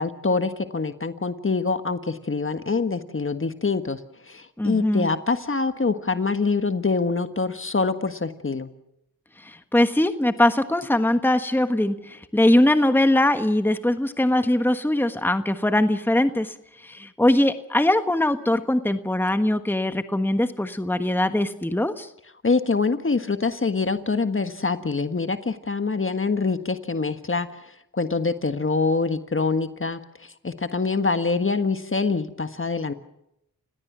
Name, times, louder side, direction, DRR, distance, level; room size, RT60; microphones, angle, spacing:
voice 1, 0.0-8.7 22.4-32.9, left 4 dB, 35° left, 9 dB, 1.5 m, -25 dB
voice 2, 4.6-5.1 9.4-22.1, left 1 dB, 5° left, 9 dB, 1.4 m, -21 dB
29.5 x 17.5 x 6.2 m, 0.81 s
cardioid pair, 50°, 36 cm